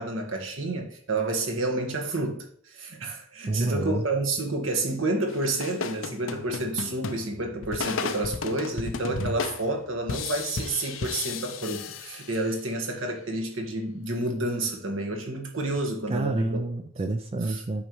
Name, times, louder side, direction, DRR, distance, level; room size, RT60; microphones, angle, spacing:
voice 1, 0.0-16.6 17.4-17.6, right 2 dB, 70° right, 3 dB, 1.4 m, -30 dB
voice 2, 3.5-4.0 9.2-9.4 16.1-17.9, right 2 dB, 30° right, 7 dB, 0.4 m, -29 dB
sound 1, 5.3-12.7, left 5 dB, 70° left, 0.6 m, -34 dB
8.4 x 5.4 x 3.0 m, 0.62 s
head